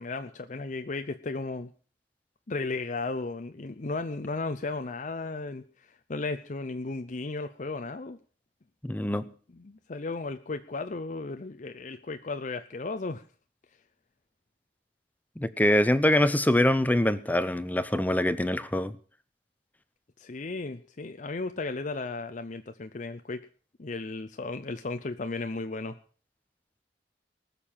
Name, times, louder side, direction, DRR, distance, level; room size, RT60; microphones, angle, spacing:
voice 1, 0.0-1.7 2.5-8.2 9.2-9.3 9.5-13.2 20.2-23.4 23.8-26.0, left 3 dB, 45° left, 8 dB, 0.7 m, -35 dB
voice 2, 8.8-9.3 15.4-18.9, left 1 dB, 10° left, 14 dB, 0.7 m, -24 dB
19.5 x 6.9 x 7.3 m, 0.41 s
head